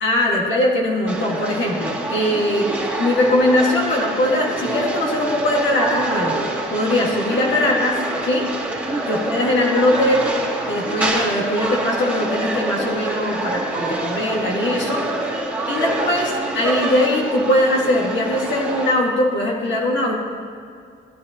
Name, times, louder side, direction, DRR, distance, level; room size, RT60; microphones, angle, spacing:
voice 1, 0.0-2.7 3.0-6.4 6.7-8.5 9.1-10.3 10.7-15.1 15.7-20.2, left 1 dB, 70° left, -2 dB, 1.8 m, -20 dB
sound 1, 1.1-18.9, right 2 dB, 10° right, 2.3 m, -26 dB
13.0 x 10.5 x 2.9 m, 2.3 s
cardioid pair, 90°, 20 cm